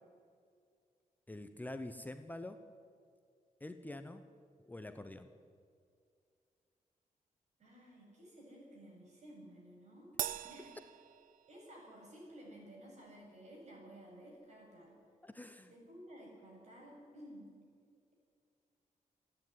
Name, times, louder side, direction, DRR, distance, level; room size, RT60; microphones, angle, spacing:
voice 1, 1.3-2.6 3.6-4.2 4.7-5.3 10.6-10.7 15.2-15.7, left 1 dB, 10° left, 8 dB, 0.8 m, -46 dB
voice 2, 7.6-10.1 10.4-10.7 11.5-15.0 15.7-17.6, equal, 55° right, -1 dB, 7.3 m, -54 dB
Crash cymbal, 10.2-11.9, right 11 dB, 90° right, 0.6 m, -42 dB
27.5 x 10.0 x 9.5 m, 2.3 s
wide cardioid pair, 140°, 14 cm